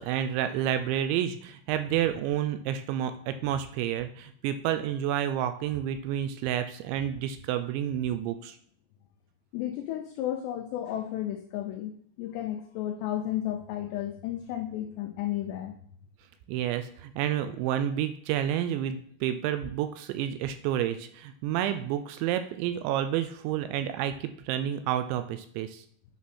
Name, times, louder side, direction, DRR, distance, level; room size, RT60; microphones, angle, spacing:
voice 1, 0.0-8.6 16.5-25.8, right 10 dB, 85° right, 10 dB, 2.7 m, -30 dB
voice 2, 9.5-11.9 12.2-15.8, left 12 dB, 85° left, 5 dB, 2.4 m, -33 dB
9.4 x 6.1 x 4.2 m, 0.63 s
omnidirectional pair, 5.7 m